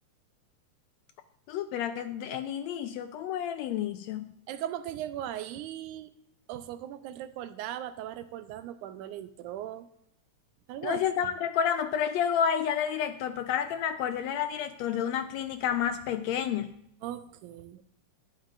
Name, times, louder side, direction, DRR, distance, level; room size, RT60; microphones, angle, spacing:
voice 1, 1.5-4.2 10.8-16.7, left 8 dB, 80° left, 9 dB, 1.6 m, -30 dB
voice 2, 4.5-6.1 6.5-9.9 10.7-11.0 17.0-17.8, right 11 dB, 90° right, 11 dB, 2.1 m, -38 dB
12.5 x 10.0 x 2.5 m, 0.74 s
omnidirectional pair, 3.4 m